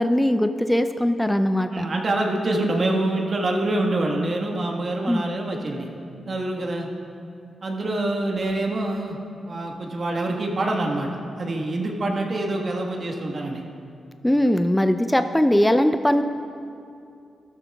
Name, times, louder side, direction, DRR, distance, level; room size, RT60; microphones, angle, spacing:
voice 1, 0.0-1.9 5.1-5.2 14.2-16.2, left 1 dB, 10° left, 9 dB, 0.5 m, -20 dB
voice 2, 1.7-5.9 6.2-6.9 7.6-9.2 9.4-13.6, right 2 dB, 55° right, 1 dB, 1.5 m, -26 dB
14.0 x 12.5 x 2.4 m, 2.5 s
supercardioid pair, 50°, 0 cm